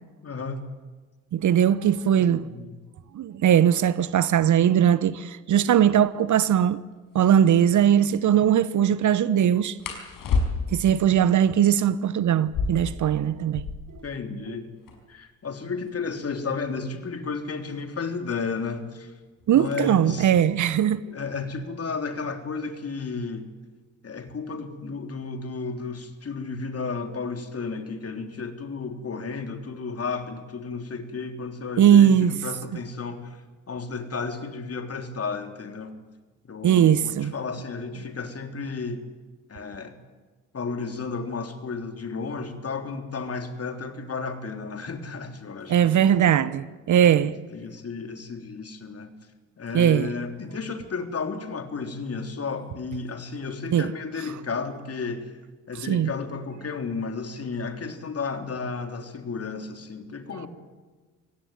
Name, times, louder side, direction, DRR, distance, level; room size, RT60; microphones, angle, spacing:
voice 1, 0.2-0.6 2.1-2.8 14.0-14.7 15.1-19.1 19.5-20.3 21.1-23.5 24.0-36.0 36.4-39.1 39.5-39.9 40.5-46.0 47.0-49.1 49.6-55.4 55.7-60.5, left 4 dB, 40° left, 3.6 m, -33 dB
voice 2, 1.3-2.5 3.1-6.8 7.1-9.8 10.7-13.6 19.5-21.0 31.8-32.3 36.6-37.3 45.7-47.3 49.7-50.1 53.7-53.9 55.9-56.1, right 9 dB, 50° right, 1.1 m, -20 dB
sound 1, 7.1-7.3 9.8-10.9 12.4-14.0 14.3-14.4 14.6-15.2 15.8-18.4 19.4-19.7 20.1-20.6 20.9-21.6, left 4 dB, 60° left, 5.6 m, -31 dB
24.5 x 17.5 x 9.5 m
hypercardioid pair, 50°, 37 cm